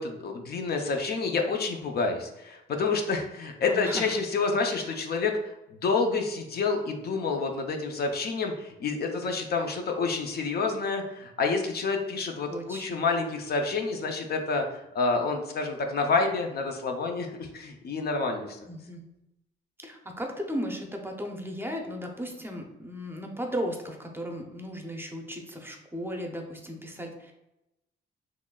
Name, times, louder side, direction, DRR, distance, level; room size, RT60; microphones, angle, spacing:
voice 1, 0.0-18.6, left 4 dB, 55° left, 4 dB, 0.5 m, -28 dB
voice 2, 3.7-4.2 4.7-4.9 12.5-13.0 18.7-19.1 19.8-27.5, equal, 10° right, 3 dB, 0.6 m, -36 dB
3.9 x 3.1 x 2.2 m, 0.92 s
cardioid pair, 90°, 20 cm